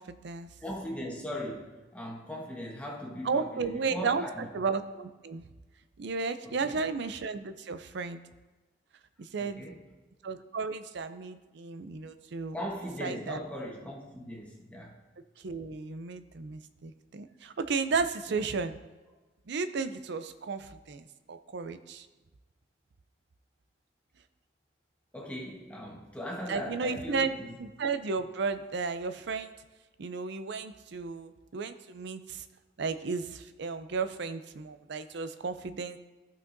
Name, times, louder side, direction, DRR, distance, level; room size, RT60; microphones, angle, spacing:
voice 1, 0.0-0.5 3.2-5.4 6.0-8.2 9.2-9.6 10.2-12.6 13.0-13.4 15.4-18.7 19.5-22.1 26.5-27.3 27.6-29.5 30.0-32.4 32.8-36.0, right 4 dB, 65° right, 11 dB, 0.5 m, -34 dB
voice 2, 0.6-4.5 6.4-6.8 9.4-9.8 12.5-15.0 25.1-27.5, equal, 5° left, -2 dB, 1.2 m, -39 dB
15.0 x 5.8 x 2.6 m, 1.2 s
head